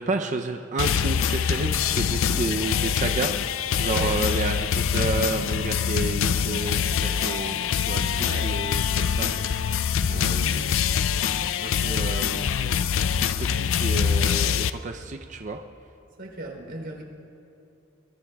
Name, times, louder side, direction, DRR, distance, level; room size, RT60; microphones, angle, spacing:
voice 1, 0.0-9.3 10.1-10.8 11.6-12.8 13.2-15.6, right 3 dB, 35° right, 4 dB, 0.5 m, -31 dB
sound 1, 0.8-14.7, left 7 dB, 65° left, 0.4 m, -24 dB
voice 2, 8.2-8.6 16.2-17.0, right 2 dB, 55° right, 0 dB, 3.3 m, -36 dB
22.5 x 22.0 x 2.3 m, 2.7 s
head